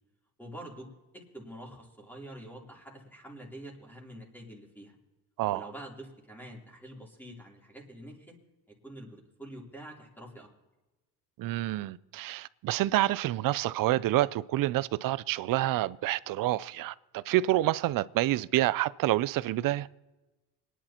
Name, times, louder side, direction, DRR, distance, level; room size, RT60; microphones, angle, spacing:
voice 1, 0.4-0.9 1.1-4.9 5.5-8.3 8.7-10.5, right 1 dB, 5° left, 3.4 m, -46 dB
voice 2, 11.4-19.9, right 15 dB, 60° right, 0.5 m, -28 dB
26.0 x 10.5 x 3.0 m
cardioid pair, 115°, 38 cm